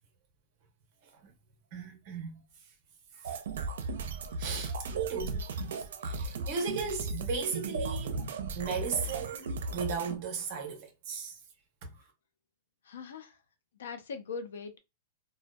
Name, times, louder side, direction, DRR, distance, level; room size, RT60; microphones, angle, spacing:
voice 1, 1.7-2.4 3.1-3.4 4.4-5.4 5.7-8.2 8.6-11.4 11.8-11.9, right 5 dB, 30° right, 0.7 m, -36 dB
sound 1, 3.2-10.2, right 3 dB, 75° right, 0.5 m, -36 dB
voice 2, 12.8-13.4 13.7-14.8, left 5 dB, 85° left, 0.5 m, -41 dB
2.6 x 2.1 x 2.2 m
supercardioid pair, 175°, 0 cm